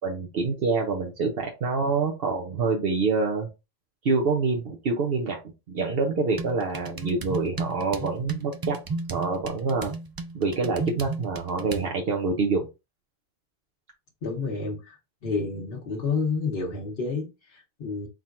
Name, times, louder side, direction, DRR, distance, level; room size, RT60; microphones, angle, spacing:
voice 1, 0.0-3.5 4.0-5.4 5.7-8.8 9.1-9.9 10.3-12.7, right 4 dB, 70° right, 1.0 m, -26 dB
sound 1, 6.3-11.9, right 3 dB, 40° right, 0.3 m, -35 dB
voice 2, 14.2-15.0 15.2-18.1, left 4 dB, 65° left, 1.2 m, -30 dB
4.2 x 3.8 x 2.5 m
omnidirectional pair, 1.0 m